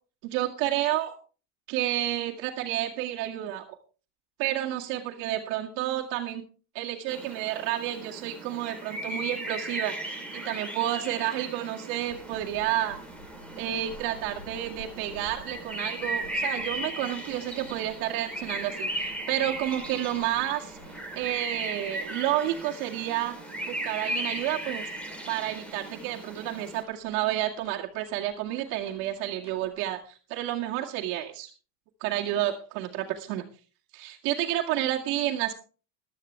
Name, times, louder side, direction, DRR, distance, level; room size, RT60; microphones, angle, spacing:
voice 1, 0.3-1.2 1.7-3.6 4.4-6.4 6.7-13.0 13.6-20.8 21.1-23.4 23.7-24.9 25.3-31.5 32.0-33.4 33.9-35.5, right 13 dB, 55° right, 0 dB, 2.1 m, -30 dB
sound 1, 7.1-26.8, right 1 dB, 5° left, 2.3 m, -37 dB
sound 2, 12.0-30.0, left 3 dB, 75° left, 6.1 m, -53 dB
15.5 x 12.5 x 3.3 m, 0.36 s
cardioid pair, 175°, 36 cm